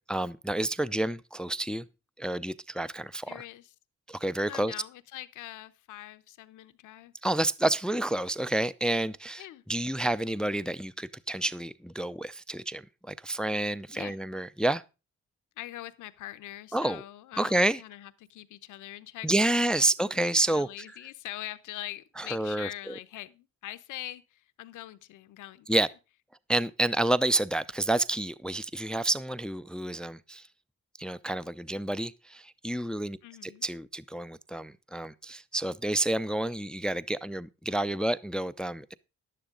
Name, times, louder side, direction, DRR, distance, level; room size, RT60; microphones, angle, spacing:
voice 1, 0.1-1.9 2.2-3.4 4.1-4.7 7.2-9.4 9.7-14.8 16.7-17.0 17.4-17.8 19.2-20.7 22.2-22.9 25.7-25.9 26.5-30.4 31.0-33.2 33.4-38.9, right 1 dB, 5° left, 0.4 m, -29 dB
voice 2, 3.3-3.7 4.5-7.1 9.4-9.6 13.9-14.2 15.6-25.7 33.2-33.7, left 15 dB, 85° left, 0.9 m, -43 dB
11.5 x 10.0 x 3.8 m
cardioid pair, 90°, 30 cm